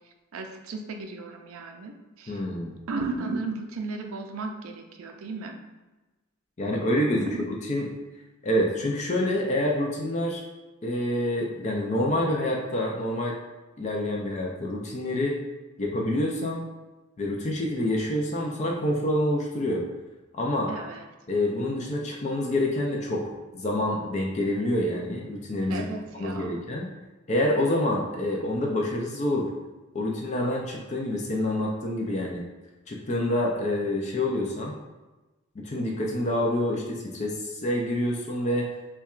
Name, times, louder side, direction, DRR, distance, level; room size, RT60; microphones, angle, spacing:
voice 1, 0.3-2.4 2.9-5.6 20.7-21.0 25.7-26.6, right 3 dB, 80° right, 4 dB, 0.4 m, -35 dB
voice 2, 2.3-2.8 6.6-7.9 8.4-10.4 10.8-13.3 13.8-15.4 15.8-16.6 17.2-19.8 20.3-20.7 21.3-25.9 26.2-26.9 27.3-29.5 29.9-32.4 32.9-34.7 35.6-38.7, left 1 dB, 35° left, -1 dB, 0.4 m, -27 dB
5.6 x 2.2 x 2.4 m, 1.1 s
head